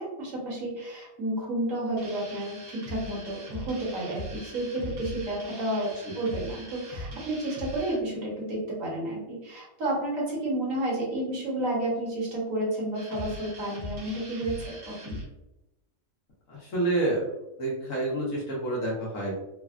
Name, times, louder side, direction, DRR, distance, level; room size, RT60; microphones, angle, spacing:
voice 1, 0.0-15.2, right 1 dB, 65° right, -4 dB, 1.4 m, -31 dB
sound 1, 2.0-8.0 12.9-15.3, equal, 90° right, 1.2 m, -41 dB
voice 2, 16.5-17.3 17.6-19.3, right 2 dB, 70° left, -4 dB, 1.2 m, -28 dB
3.4 x 2.1 x 2.4 m, 0.96 s
omnidirectional pair, 1.5 m